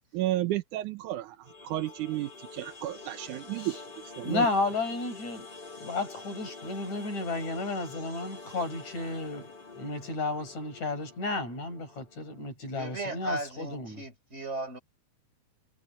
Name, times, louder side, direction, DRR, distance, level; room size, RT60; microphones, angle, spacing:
voice 1, 0.1-3.8 4.2-4.5, right 15 dB, 90° right, 2.4 m, -32 dB
sound 1, 1.4-12.5, left 4 dB, 35° left, 5.3 m, -47 dB
voice 2, 4.2-5.5 5.8-14.0, left 3 dB, 65° left, 8.7 m, -33 dB
voice 3, 12.7-14.8, right 2 dB, 20° right, 5.3 m, -36 dB
omnidirectional pair, 3.4 m